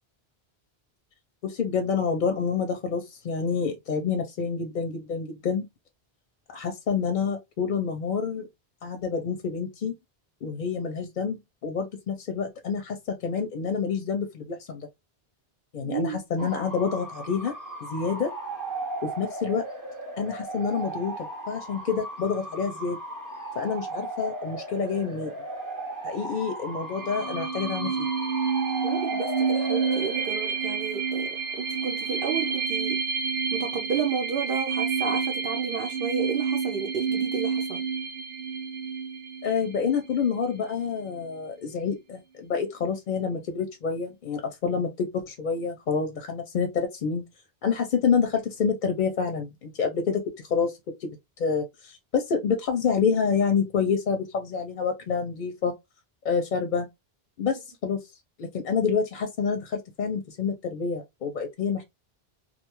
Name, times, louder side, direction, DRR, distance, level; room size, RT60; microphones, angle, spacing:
voice 1, 1.4-5.7 6.5-8.5 8.8-9.9 10.4-14.9 15.7-17.5 17.9-18.3 19.0-19.6 20.2-21.1 21.5-23.0 23.6-25.3 26.0-28.1 39.4-47.2 47.6-55.7 56.2-56.9 57.4-58.0 58.4-61.8, left 6 dB, 60° left, 0.6 m, -28 dB
voice 2, 15.8-16.2 28.8-31.3 31.6-33.0 33.5-37.8, right 6 dB, 65° right, 0.7 m, -31 dB
Bark / Motor vehicle (road) / Siren, 16.4-32.6, right 1 dB, 20° right, 0.6 m, -37 dB
sound 1, 26.9-40.3, right 5 dB, 90° right, 1.0 m, -29 dB
2.4 x 2.3 x 2.9 m
omnidirectional pair, 1.0 m